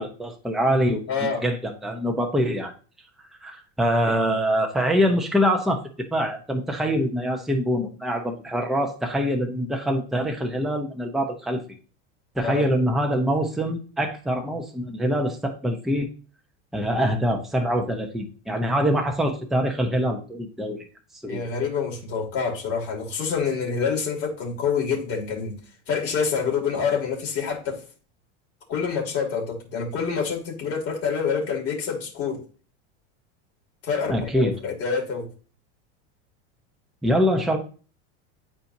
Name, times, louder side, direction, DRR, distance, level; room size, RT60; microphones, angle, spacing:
voice 1, 0.0-2.7 3.4-11.6 12.4-16.1 16.7-20.8 21.2-21.4 34.1-34.5 37.0-37.6, equal, ahead, 2 dB, 0.8 m, -24 dB
voice 2, 1.1-1.4 4.0-4.2 12.4-12.7 21.3-25.6 25.9-27.8 28.7-32.4 33.8-35.3, left 6 dB, 40° left, 0 dB, 2.6 m, -27 dB
9.2 x 4.4 x 2.7 m, 0.38 s
supercardioid pair, 130°, 35 cm